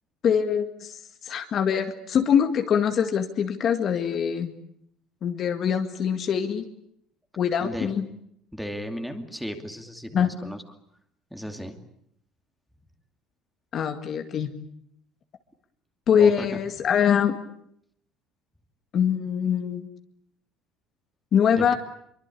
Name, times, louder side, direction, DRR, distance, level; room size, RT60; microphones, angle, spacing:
voice 1, 0.2-4.5 5.2-6.7 7.4-8.1 10.1-10.3 13.7-14.5 16.1-17.4 18.9-19.9 21.3-21.7, left 8 dB, 40° left, 6 dB, 2.0 m, -23 dB
voice 2, 7.6-7.9 8.5-10.6 11.3-11.8 16.2-16.6 21.5-21.8, equal, ahead, 5 dB, 2.6 m, -35 dB
25.5 x 24.0 x 8.5 m, 0.72 s
cardioid pair, 150°, 0 cm